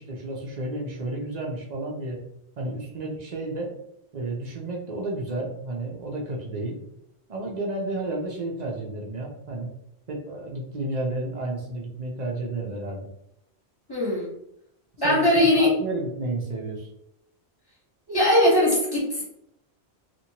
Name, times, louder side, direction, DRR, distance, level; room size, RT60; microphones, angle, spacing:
voice 1, 0.0-2.2 2.6-3.7 4.1-6.8 7.3-9.7 10.1-13.1 15.0-16.9, right 2 dB, 45° right, -1 dB, 0.7 m, -31 dB
voice 2, 13.9-14.3 15.0-15.7 18.1-19.2, left 1 dB, 20° left, -5 dB, 1.1 m, -20 dB
2.9 x 2.5 x 2.8 m, 0.76 s
omnidirectional pair, 1.1 m